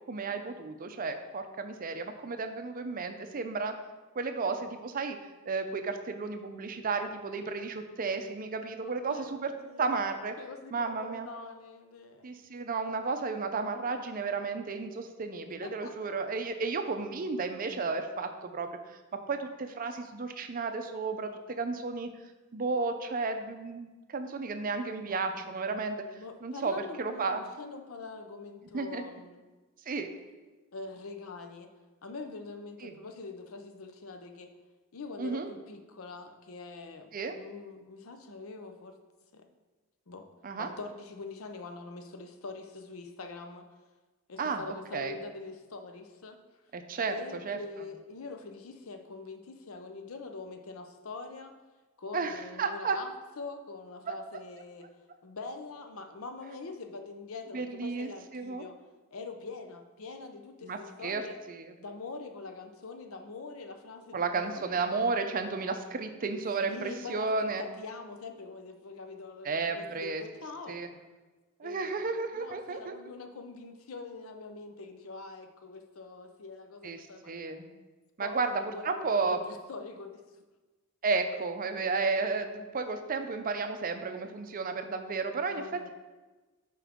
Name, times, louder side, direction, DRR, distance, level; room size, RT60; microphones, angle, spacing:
voice 1, 0.1-3.7 4.2-5.2 5.5-9.5 9.8-10.3 10.7-11.3 12.2-19.0 19.3-22.1 22.5-26.0 26.4-27.4 28.7-29.0 29.9-30.1 32.8-32.9 35.2-35.5 37.1-37.4 40.4-40.7 44.4-44.7 44.9-45.1 46.7-47.6 52.1-53.0 57.5-58.7 60.6-61.2 61.5-61.7 64.1-67.6 69.4-70.2 70.7-70.9 71.6-73.0 76.8-77.7 78.2-79.4 81.0-85.9, right 4 dB, 40° right, 7 dB, 0.5 m, -33 dB
voice 2, 8.8-9.9 10.4-12.3 15.6-16.1 25.0-25.5 26.2-29.5 30.7-31.7 32.0-34.5 34.9-39.0 39.3-39.4 40.1-40.2 40.6-43.7 44.3-46.4 47.1-51.5 52.0-53.1 53.4-54.9 55.2-58.8 59.1-61.4 61.8-64.8 66.6-70.8 71.6-77.4 78.2-80.2 85.5-85.9, left 3 dB, 80° left, 6 dB, 0.7 m, -44 dB
7.4 x 4.6 x 3.6 m, 1.2 s
head